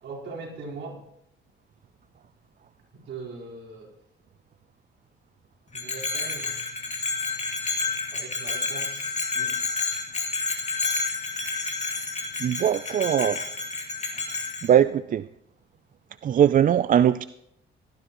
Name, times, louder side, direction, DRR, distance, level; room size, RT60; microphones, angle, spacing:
voice 1, 0.0-1.0 2.9-3.9 5.7-6.5 8.1-9.5, right 3 dB, 65° right, -2 dB, 4.3 m, -40 dB
Bell, 5.7-14.7, left 4 dB, 35° left, 2.7 m, -30 dB
voice 2, 12.4-13.4 14.6-15.3 16.2-17.2, right 9 dB, 45° right, 14 dB, 0.4 m, -20 dB
18.5 x 12.5 x 3.0 m, 0.78 s
cardioid pair, 90°, 20 cm